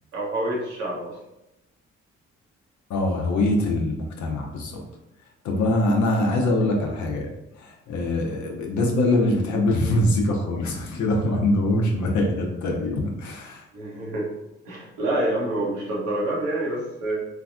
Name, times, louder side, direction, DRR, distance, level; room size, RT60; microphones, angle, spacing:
voice 1, 0.1-1.2 13.7-14.3 14.6-17.3, right 1 dB, 85° right, -4 dB, 0.9 m, -27 dB
voice 2, 2.9-4.8 5.2-7.3 7.5-13.7, left 1 dB, 65° left, 1 dB, 0.6 m, -23 dB
3.3 x 2.2 x 2.4 m, 0.91 s
hypercardioid pair, 45°, 32 cm